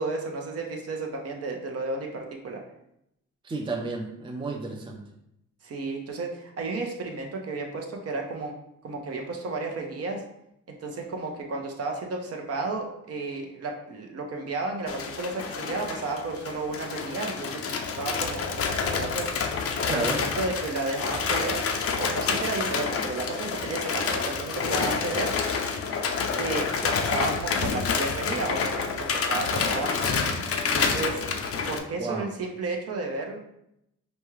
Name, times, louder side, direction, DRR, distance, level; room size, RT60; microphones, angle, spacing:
voice 1, 0.0-2.6 5.6-8.5 8.8-10.2 10.8-19.3 19.9-21.6 21.9-25.3 26.4-30.1 30.7-31.2 31.7-33.4, right 3 dB, 50° right, 2 dB, 0.8 m, -32 dB
voice 2, 3.4-5.1 19.9-20.2 32.0-32.3, right 3 dB, 15° right, 1 dB, 0.5 m, -32 dB
sound 1, 14.9-31.8, left 5 dB, 50° left, 0.5 m, -28 dB
5.2 x 2.3 x 3.1 m, 0.80 s
cardioid pair, 90°, 30 cm